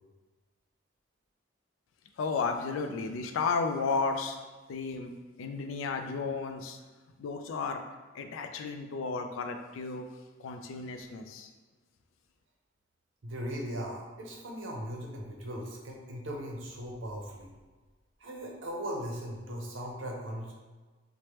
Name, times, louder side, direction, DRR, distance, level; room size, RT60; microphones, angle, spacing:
voice 1, 2.2-4.4 4.7-5.1 5.4-6.8 7.2-7.8 8.1-10.1 10.4-11.5, left 4 dB, 85° left, 6 dB, 0.3 m, -33 dB
voice 2, 13.2-17.5 18.2-20.5, equal, 75° right, 0 dB, 0.6 m, -38 dB
3.2 x 2.1 x 2.9 m, 1.3 s
head